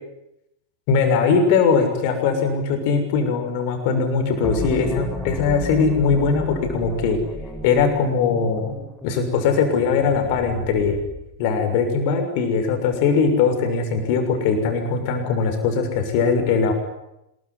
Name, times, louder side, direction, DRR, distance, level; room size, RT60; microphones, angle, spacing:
voice 1, 0.9-7.2 7.6-8.7 9.0-11.0 11.4-16.7, left 5 dB, 45° left, 6 dB, 6.4 m, -20 dB
sound 1, 4.4-11.3, left 2 dB, 10° left, 6.4 m, -33 dB
26.0 x 22.5 x 9.9 m, 0.86 s
figure-of-eight pair, 90°, 0 cm